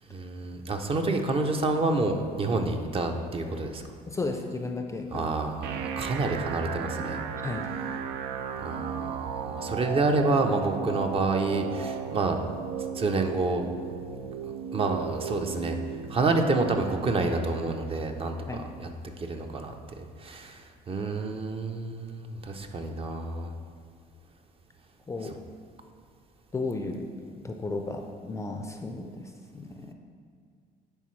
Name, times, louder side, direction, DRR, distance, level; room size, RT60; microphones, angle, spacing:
voice 1, 0.1-3.8 5.1-7.2 8.6-12.4 12.9-13.7 14.7-15.8 16.1-18.4 18.8-18.9 19.2-23.5, right 3 dB, 35° right, 5 dB, 0.6 m, -28 dB
voice 2, 4.1-5.3 7.4-7.7 18.5-18.7 25.1-25.4 26.5-29.9, left 3 dB, 15° left, 4 dB, 0.4 m, -34 dB
sound 1, 5.6-19.6, right 7 dB, 90° right, 0.5 m, -36 dB
9.9 x 3.7 x 3.1 m, 2.3 s
cardioid pair, 110°, 17 cm